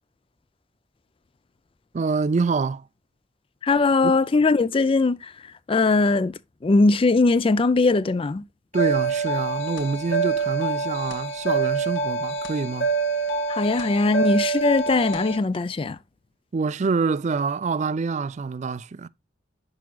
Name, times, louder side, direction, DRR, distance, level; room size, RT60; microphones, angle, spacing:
voice 1, 1.9-2.8 4.0-4.1 8.7-12.9 16.5-19.1, right 4 dB, 40° right, 0.4 m, -26 dB
voice 2, 3.6-5.3 5.7-8.4 13.5-16.0, left 3 dB, 30° left, 0.4 m, -20 dB
sound 1, 8.7-15.4, right 4 dB, 75° left, 1.4 m, -26 dB
10.5 x 6.1 x 2.3 m
head